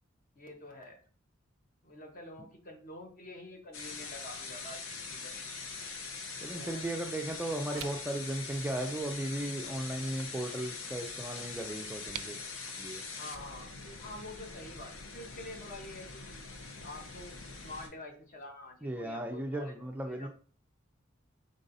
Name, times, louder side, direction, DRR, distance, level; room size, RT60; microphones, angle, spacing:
voice 1, 0.4-1.0 1.8-5.3 6.4-6.9 7.7-7.9 13.1-16.3 16.8-20.3, left 2 dB, 45° left, 1.1 m, -47 dB
sound 1, 3.7-17.9, left 4 dB, 80° left, 0.8 m, -43 dB
voice 2, 6.4-12.4 12.8-13.0 18.8-20.3, right 1 dB, 10° right, 0.3 m, -36 dB
sound 2, 7.7-12.7, right 10 dB, 85° right, 0.4 m, -50 dB
5.2 x 3.8 x 2.6 m
head